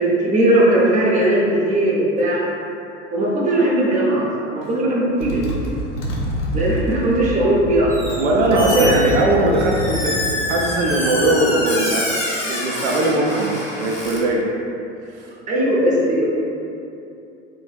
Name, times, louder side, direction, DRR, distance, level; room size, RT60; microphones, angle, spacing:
voice 1, 0.0-2.4 3.1-5.5 6.5-8.0 8.5-8.9 15.5-16.2, right 1 dB, 20° right, -4 dB, 0.6 m, -18 dB
Motorcycle, 4.6-4.8 5.2-11.4, equal, 80° left, 0.6 m, -27 dB
Squeak, 7.9-8.2 8.5-14.2, left 1 dB, 20° left, 0.8 m, -26 dB
voice 2, 8.2-10.2 10.5-14.5 15.1-15.3, right 1 dB, 75° right, -1 dB, 0.5 m, -20 dB
2.9 x 2.0 x 3.1 m, 2.7 s
figure-of-eight pair, 75°, 36 cm